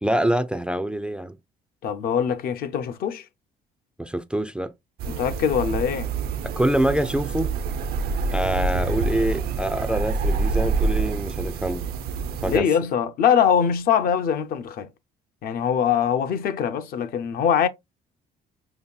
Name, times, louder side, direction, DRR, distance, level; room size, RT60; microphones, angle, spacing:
voice 1, 0.0-1.4 4.0-4.7 6.4-7.5 8.3-11.9 12.4-12.7, right 1 dB, 5° right, 0.3 m, -25 dB
voice 2, 1.8-3.2 5.1-6.1 12.4-14.9 15.4-17.7, left 8 dB, 60° left, 0.6 m, -22 dB
sound 1, 5.0-12.6, right 4 dB, 65° right, 0.5 m, -27 dB
5.2 x 2.7 x 2.2 m
cardioid pair, 110°, 17 cm